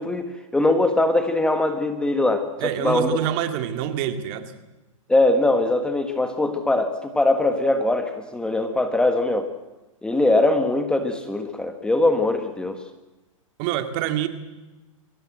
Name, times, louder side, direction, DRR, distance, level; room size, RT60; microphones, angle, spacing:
voice 1, 0.0-2.4 2.8-3.1 5.1-9.5 10.0-12.8, left 2 dB, 5° left, 7 dB, 1.5 m, -21 dB
voice 2, 2.6-4.5 13.6-14.3, right 11 dB, 40° right, 8 dB, 2.2 m, -26 dB
23.0 x 17.5 x 7.8 m, 1.1 s
hypercardioid pair, 135°, 17 cm